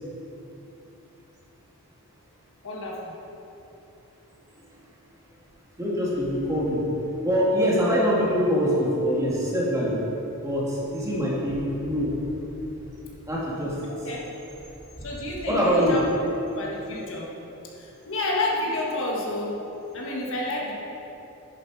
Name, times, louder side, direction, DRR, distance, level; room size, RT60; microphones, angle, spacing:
voice 1, 2.6-3.1 14.0-14.2 15.0-16.0 16.5-17.3 17.8-19.7 19.9-20.7, left 2 dB, 60° left, -3 dB, 1.6 m, -30 dB
voice 2, 5.8-6.8 7.2-9.9 10.4-12.1 13.3-13.7 15.5-16.0, equal, 15° right, -6 dB, 2.1 m, -24 dB
10.5 x 7.5 x 4.7 m, 3.0 s
head